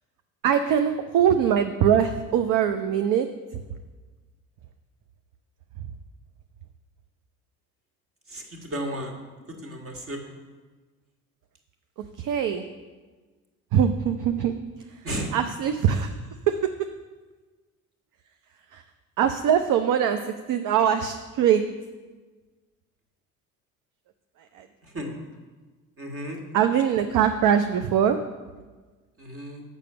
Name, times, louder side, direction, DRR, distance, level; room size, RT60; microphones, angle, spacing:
voice 1, 0.4-3.3 12.2-12.6 13.7-14.6 15.3-16.1 16.5-16.9 18.7-18.8 19.2-21.6 24.5-24.7 26.5-28.2, right 8 dB, 45° right, 8 dB, 0.7 m, -22 dB
voice 2, 8.3-9.1 9.6-10.3 15.0-15.3 24.8-25.1 26.0-26.4 29.2-29.6, right 1 dB, 30° right, 3 dB, 1.9 m, -33 dB
6.7 x 6.2 x 6.8 m, 1.3 s
figure-of-eight pair, 55°, 45 cm